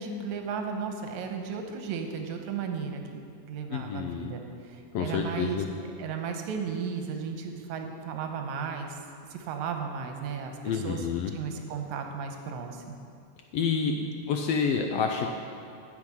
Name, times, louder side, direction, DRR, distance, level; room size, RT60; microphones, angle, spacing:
voice 1, 0.0-3.2 3.5-5.6 6.0-9.0 9.3-13.0 14.0-14.1, right 6 dB, 80° right, 4 dB, 2.2 m, -35 dB
voice 2, 3.7-4.3 4.9-5.7 10.6-11.3 13.5-13.9 14.3-15.3, left 6 dB, 75° left, 3 dB, 1.5 m, -28 dB
9.8 x 6.0 x 8.6 m, 2.6 s
omnidirectional pair, 3.3 m